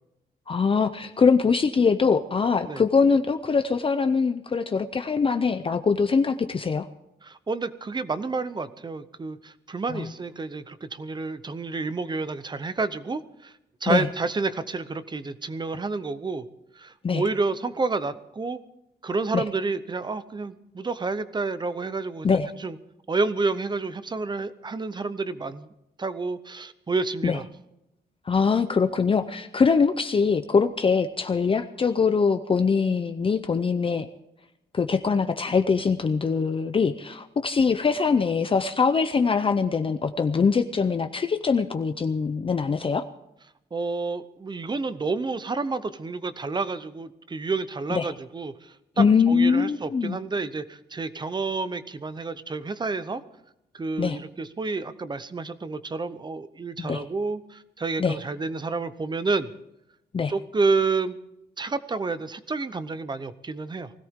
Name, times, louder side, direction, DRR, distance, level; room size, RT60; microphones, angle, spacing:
voice 1, 0.5-6.9 9.9-10.1 13.9-14.1 17.0-17.2 19.3-19.4 22.2-22.5 27.2-27.4 28.3-34.1 34.7-43.0 47.9-48.1 49.0-50.2 54.0-54.2 56.8-57.0 58.0-58.2 60.1-60.3, left 5 dB, 30° left, 8 dB, 0.6 m, -23 dB
voice 2, 7.2-13.5 13.8-16.5 16.7-18.6 19.0-22.8 23.1-25.7 26.0-27.4 43.7-53.2 53.7-59.5 60.3-61.2 61.6-63.9, right 3 dB, 25° right, 13 dB, 0.8 m, -29 dB
20.5 x 17.0 x 3.7 m, 0.85 s
wide cardioid pair, 175°, 17 cm